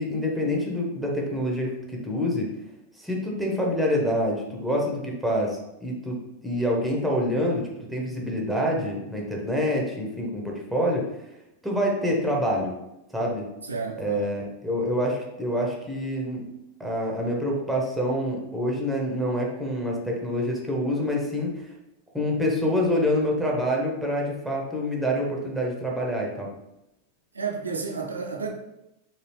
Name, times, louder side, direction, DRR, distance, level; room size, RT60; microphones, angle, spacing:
voice 1, 0.0-2.5 3.0-11.1 11.6-12.7 13.1-13.5 14.0-16.5 16.8-21.6 22.1-26.5, equal, ahead, -2 dB, 0.9 m, -26 dB
voice 2, 13.7-14.3 27.3-28.5, right 5 dB, 75° right, 2 dB, 0.6 m, -31 dB
3.9 x 2.3 x 3.2 m, 0.88 s
figure-of-eight pair, 90°, 0 cm